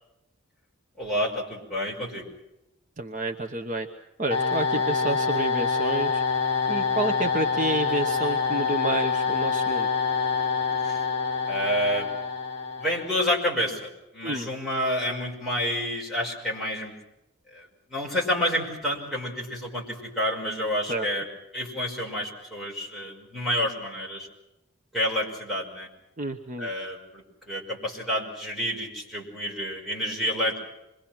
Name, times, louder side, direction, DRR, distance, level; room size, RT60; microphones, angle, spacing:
voice 1, 1.0-2.3 10.8-11.0 11.5-12.1 12.8-16.9 17.5-21.3 21.5-24.3 24.9-25.9 26.6-30.6, equal, ahead, -3 dB, 5.7 m, -29 dB
voice 2, 3.0-3.9 4.2-6.2 6.7-9.9 14.2-14.5 20.9-21.1 26.2-26.7, right 2 dB, 40° right, 4 dB, 1.1 m, -29 dB
sound 1, 4.3-13.2, left 5 dB, 30° left, 4.0 m, -26 dB
26.5 x 22.5 x 6.1 m, 0.91 s
head